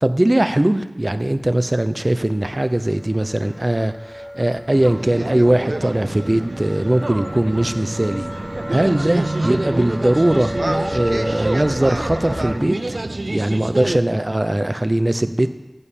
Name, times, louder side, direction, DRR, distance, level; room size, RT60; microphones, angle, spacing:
voice 1, 0.0-8.3 8.7-10.5 10.9-13.0 13.3-15.6, right 1 dB, 40° right, 10 dB, 0.7 m, -20 dB
sound 1, 2.0-12.6, equal, ahead, 3.5 m, -33 dB
sound 2, 4.7-14.0, right 2 dB, 75° right, 0.4 m, -27 dB
11.5 x 5.5 x 8.4 m, 1.0 s
wide cardioid pair, 45°, 0 cm